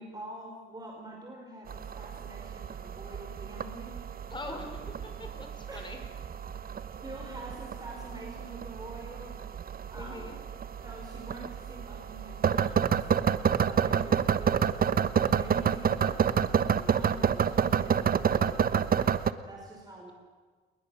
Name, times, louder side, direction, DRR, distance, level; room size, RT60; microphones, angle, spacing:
voice 1, 0.0-4.1 4.5-5.0 5.7-5.8 7.0-9.4 9.9-10.3 10.8-13.0 13.6-14.8 15.1-20.1, right 2 dB, 20° right, 0 dB, 5.4 m, -46 dB
sound 1, 1.7-19.3, right 7 dB, 45° right, 1.1 m, -29 dB
voice 2, 4.3-4.6 5.0-6.0 9.9-10.4 13.9-14.3, left 2 dB, 25° left, 5 dB, 5.6 m, -43 dB
28.5 x 21.5 x 7.4 m, 1.5 s
cardioid pair, 90°, 20 cm